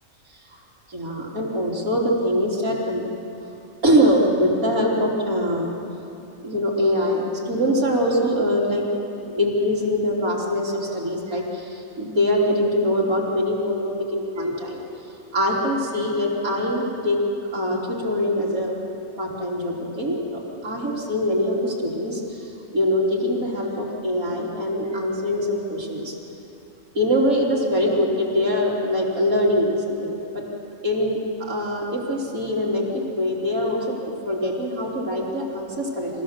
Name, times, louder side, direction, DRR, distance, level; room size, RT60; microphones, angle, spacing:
voice 1, 0.9-3.0 3.8-5.8 6.4-8.8 9.3-14.8 15.3-17.2 17.5-18.8 19.2-22.5 22.7-26.2 26.9-30.4 30.8-36.2, equal, 75° right, -4 dB, 3.7 m, -23 dB
28.0 x 15.5 x 7.4 m, 3.0 s
omnidirectional pair, 1.5 m